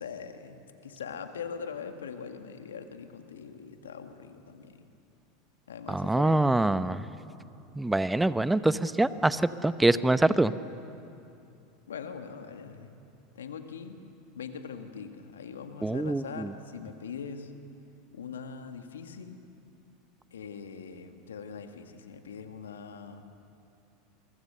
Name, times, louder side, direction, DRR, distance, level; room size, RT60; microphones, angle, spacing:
voice 1, 0.0-4.9 5.7-6.5 11.9-13.0 13.4-14.0 14.3-17.5 18.1-19.4 20.3-23.3, left 6 dB, 80° left, 7 dB, 1.8 m, -42 dB
voice 2, 5.9-7.1 7.8-10.5 15.8-16.5, right 2 dB, 10° right, 14 dB, 0.8 m, -25 dB
28.0 x 23.5 x 6.8 m, 2.7 s
hypercardioid pair, 85°, 0 cm